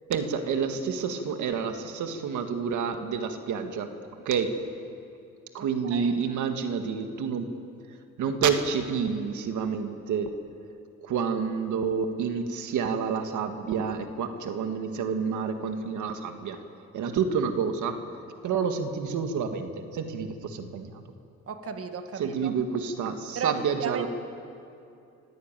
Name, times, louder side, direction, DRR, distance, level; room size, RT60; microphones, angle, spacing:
voice 1, 0.1-3.9 4.3-4.6 5.5-7.5 8.2-10.3 11.0-16.6 16.9-18.0 18.4-21.0 22.2-24.1, right 6 dB, 75° right, 6 dB, 1.9 m, -29 dB
voice 2, 21.5-22.5 23.3-24.1, right 6 dB, 50° right, 6 dB, 1.8 m, -34 dB
25.0 x 15.5 x 9.1 m, 2.6 s
cardioid pair, 90°, 30 cm